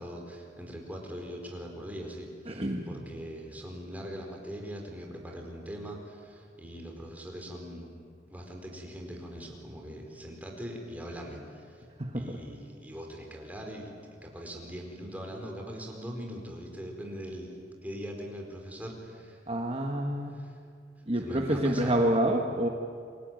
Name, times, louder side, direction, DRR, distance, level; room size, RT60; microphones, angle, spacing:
voice 1, 0.0-7.9 8.3-11.8 12.1-13.9 14.2-17.6 17.8-19.4 20.3-20.5 21.1-22.0, equal, 10° right, 1 dB, 4.5 m, -41 dB
voice 2, 2.5-3.0 12.0-12.4 19.5-20.4 21.1-22.7, right 1 dB, 35° right, 1 dB, 1.6 m, -28 dB
29.0 x 22.5 x 9.1 m, 2.3 s
head